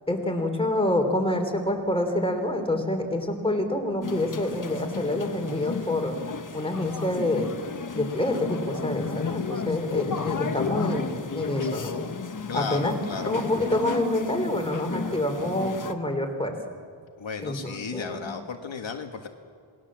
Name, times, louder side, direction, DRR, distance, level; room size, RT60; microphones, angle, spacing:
voice 1, 0.1-6.2 6.5-7.5 7.9-11.9 12.5-13.0 13.3-16.5 17.4-18.3, left 1 dB, 10° left, 4 dB, 3.6 m, -27 dB
sound 1, 4.0-15.9, left 5 dB, 40° left, 1.3 m, -33 dB
voice 2, 12.5-13.3 17.2-19.3, left 5 dB, 65° left, 5 dB, 1.7 m, -34 dB
27.5 x 20.0 x 7.5 m, 2.3 s
wide cardioid pair, 120°, 49 cm